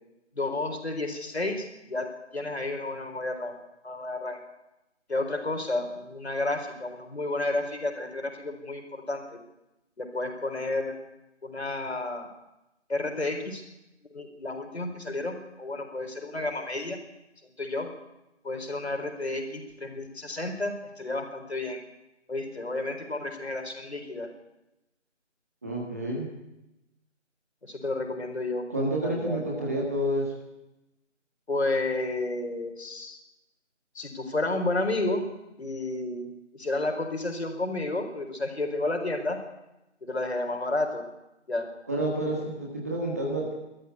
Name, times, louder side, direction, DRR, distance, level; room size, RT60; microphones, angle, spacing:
voice 1, 0.3-3.6 3.8-4.4 5.1-9.4 10.0-10.9 11.4-12.3 12.9-13.6 14.1-17.0 17.6-17.9 18.4-21.8 22.3-24.3 27.6-28.6 29.0-29.6 31.5-33.2 33.9-35.2 35.6-36.3 36.5-39.4 40.0-41.0 41.5-41.7, left 2 dB, 60° left, 5 dB, 4.4 m, -31 dB
voice 2, 25.6-26.3 28.7-30.3 41.9-43.5, right 1 dB, 10° right, -2 dB, 1.6 m, -29 dB
20.0 x 13.5 x 9.5 m, 0.94 s
figure-of-eight pair, 170°, 37 cm